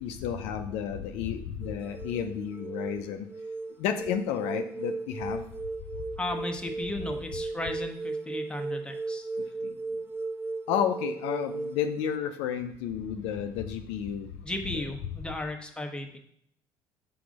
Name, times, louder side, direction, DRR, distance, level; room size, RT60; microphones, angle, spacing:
voice 1, 0.0-3.3 3.8-5.4 10.7-14.3 14.7-14.8, left 8 dB, 70° left, 6 dB, 0.5 m, -31 dB
sound 1, 1.6-12.2, right 3 dB, 20° right, 0.3 m, -36 dB
voice 2, 6.2-9.3 14.4-16.2, left 1 dB, 10° left, 3 dB, 1.1 m, -35 dB
6.0 x 3.8 x 5.3 m, 0.68 s
hypercardioid pair, 60°, 11 cm